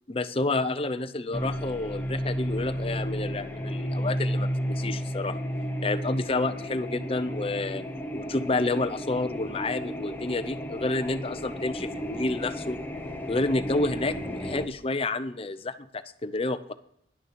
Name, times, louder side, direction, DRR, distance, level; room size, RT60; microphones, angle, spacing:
voice 1, 0.1-5.4 5.8-7.8 8.1-12.8 13.3-16.7, left 2 dB, 30° left, 12 dB, 0.6 m, -29 dB
sound 1, 1.3-14.7, equal, 10° left, 0.9 m, -33 dB
11.0 x 6.5 x 6.8 m, 0.73 s
head